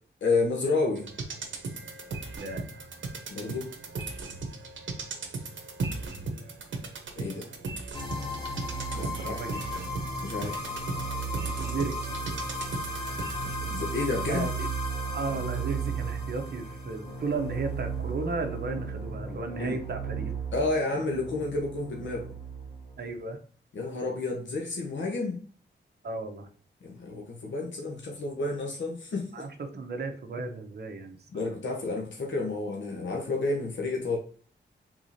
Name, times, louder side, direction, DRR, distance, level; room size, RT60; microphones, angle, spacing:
voice 1, 0.2-1.1 3.3-3.7 7.2-7.5 8.9-9.4 10.2-10.7 13.4-14.5 19.6-19.8 20.5-22.3 23.7-25.4 26.8-29.4 31.3-34.2, left 3 dB, 80° left, -1 dB, 1.0 m, -30 dB
sound 1, 1.0-13.8 14.1-14.2, right 3 dB, 85° right, 0.9 m, -38 dB
voice 2, 2.4-2.9 9.2-9.9 11.4-12.2 14.3-14.7 15.1-20.3 23.0-23.4 26.0-26.5 29.3-29.5 29.7-31.5, right 3 dB, 60° right, 5 dB, 0.9 m, -35 dB
Suspense strings, 7.9-23.1, right 2 dB, 25° left, 2.2 m, -35 dB
4.8 x 3.7 x 2.7 m, 0.43 s
wide cardioid pair, 130°, 19 cm